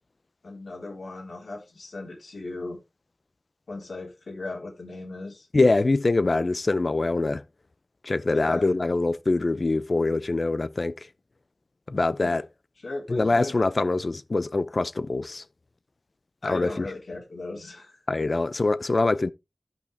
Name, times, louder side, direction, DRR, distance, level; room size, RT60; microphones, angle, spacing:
voice 1, 0.4-2.8 3.7-5.5 8.3-8.7 12.2-12.4 12.8-13.6 16.4-18.3, left 2 dB, 90° left, 3.8 m, -37 dB
voice 2, 5.5-7.4 8.0-11.1 11.9-12.4 13.1-15.4 16.4-16.8 18.1-19.3, left 3 dB, 55° left, 0.6 m, -24 dB
13.0 x 5.7 x 3.4 m
wide cardioid pair, 60°, 0 cm